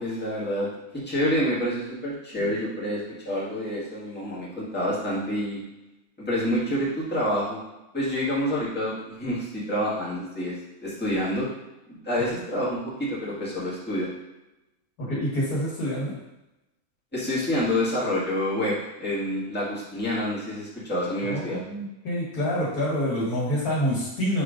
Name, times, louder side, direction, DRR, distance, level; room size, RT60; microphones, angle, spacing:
voice 1, 0.0-5.6 6.2-7.6 7.9-10.6 10.8-11.5 11.9-14.1 17.1-21.6, equal, 5° left, -9 dB, 1.8 m, -28 dB
voice 2, 15.0-16.1 21.2-24.4, equal, 85° left, -5 dB, 2.2 m, -27 dB
5.5 x 3.6 x 5.1 m, 0.98 s
omnidirectional pair, 1.5 m